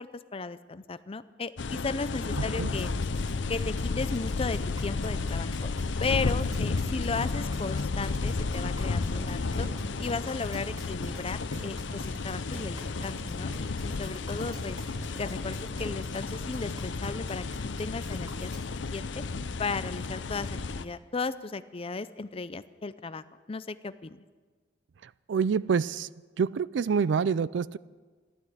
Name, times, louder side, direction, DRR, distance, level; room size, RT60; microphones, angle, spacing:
voice 1, 0.0-2.9 3.5-5.7 6.0-9.7 10.0-14.8 15.2-18.5 18.9-19.2 19.6-24.2, left 4 dB, 30° left, 14 dB, 0.5 m, -35 dB
sound 1, 1.6-20.8, left 3 dB, 70° left, 0.6 m, -32 dB
voice 2, 2.4-2.7 25.0-26.1 26.4-27.8, right 6 dB, 65° right, 19 dB, 0.4 m, -27 dB
sound 2, 2.8-18.7, equal, 20° right, 3.0 m, -50 dB
sound 3, 8.7-16.4, right 1 dB, 50° right, 3.6 m, -46 dB
15.0 x 12.0 x 7.9 m, 1.4 s
head